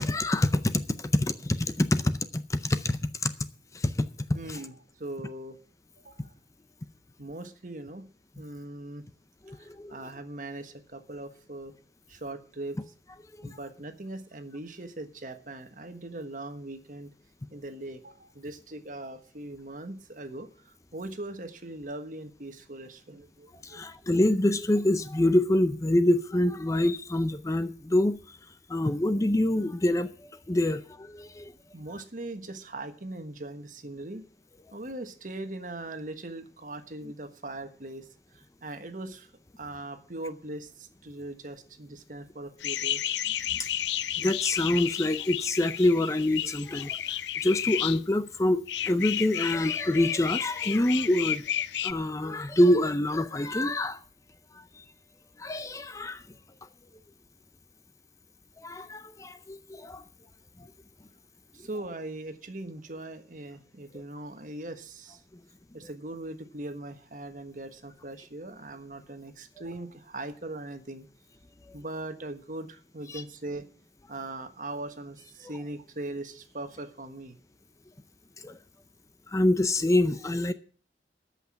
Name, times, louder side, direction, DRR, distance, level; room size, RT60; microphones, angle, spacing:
voice 1, 0.0-3.3 3.7-4.1 4.5-4.6 9.5-9.9 13.4-13.5 23.6-28.4 28.7-31.5 43.6-43.7 44.2-51.4 51.8-54.0 54.5-54.8 55.4-56.2 58.6-60.0 60.6-60.7 71.7-71.8 73.1-73.2 78.4-78.6 79.3-80.5, left 1 dB, 20° left, 0.5 m, -26 dB
voice 2, 4.3-5.6 6.0-6.3 7.2-8.0 8.4-9.1 9.5-11.7 12.1-12.8 13.4-17.1 17.5-23.8 31.7-34.2 34.7-39.3 39.6-43.0 61.5-65.2 65.7-71.1 71.7-73.7 74.1-77.4, right 2 dB, 50° right, 1.3 m, -40 dB
sound 1, 42.6-48.0 48.7-51.9, left 11 dB, 90° left, 0.5 m, -32 dB
13.5 x 5.8 x 8.5 m
head